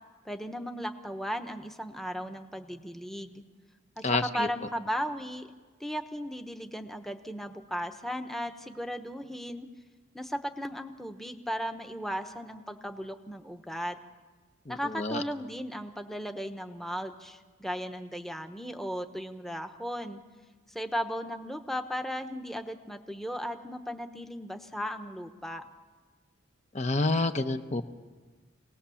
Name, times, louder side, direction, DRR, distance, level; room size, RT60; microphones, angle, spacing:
voice 1, 0.2-3.4 4.0-5.5 5.8-9.7 10.1-14.0 14.7-20.2 20.7-25.6, equal, ahead, 6 dB, 1.0 m, -36 dB
voice 2, 4.0-4.5 14.7-15.2 26.7-27.8, left 2 dB, 35° left, 7 dB, 0.9 m, -28 dB
27.5 x 19.0 x 7.1 m, 1.4 s
head